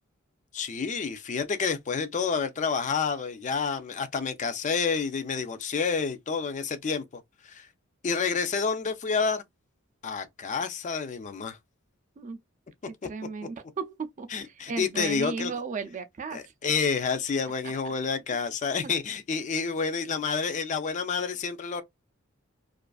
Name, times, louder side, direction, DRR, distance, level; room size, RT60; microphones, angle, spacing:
voice 1, 0.5-7.7 8.0-9.4 10.0-11.6 14.3-15.5 16.3-21.8, left 5 dB, 35° left, 0.4 m, -29 dB
voice 2, 13.0-16.4, right 4 dB, 35° right, 0.4 m, -35 dB
2.4 x 2.4 x 2.3 m
head